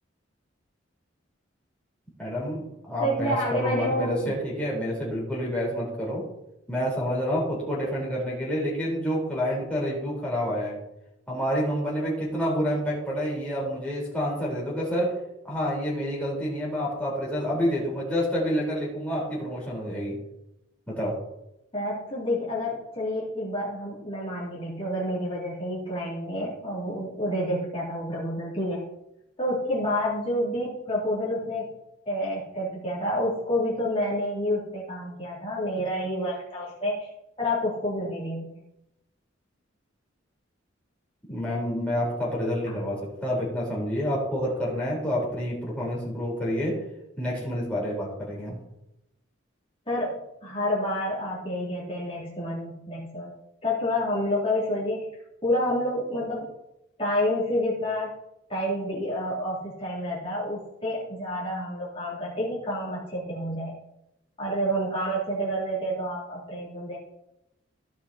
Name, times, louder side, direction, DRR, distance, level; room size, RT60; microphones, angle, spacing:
voice 1, 2.2-6.2 6.7-10.8 11.3-15.1 15.4-20.2 20.9-21.1 41.3-46.8 47.2-48.6, equal, 5° left, -6 dB, 4.1 m, -28 dB
voice 2, 3.0-4.3 21.7-28.9 29.4-31.7 32.0-37.1 37.4-38.6 42.7-42.8 49.9-53.3 53.6-55.1 55.4-56.5 57.0-58.1 58.5-63.7 64.4-67.0, equal, 30° left, -8 dB, 3.3 m, -29 dB
16.0 x 5.7 x 4.3 m, 0.87 s
head